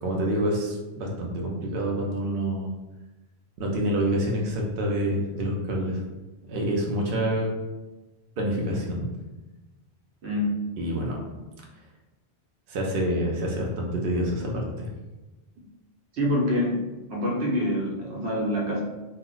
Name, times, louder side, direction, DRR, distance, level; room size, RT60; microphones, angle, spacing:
voice 1, 0.0-2.7 3.6-6.0 6.5-7.5 8.4-9.1 10.8-11.1 12.7-14.9, right 1 dB, 65° right, -1 dB, 0.7 m, -27 dB
voice 2, 10.2-10.6 16.1-16.8 17.1-18.8, left 1 dB, 85° right, -2 dB, 0.9 m, -26 dB
2.1 x 2.0 x 3.7 m, 1.1 s
omnidirectional pair, 1.1 m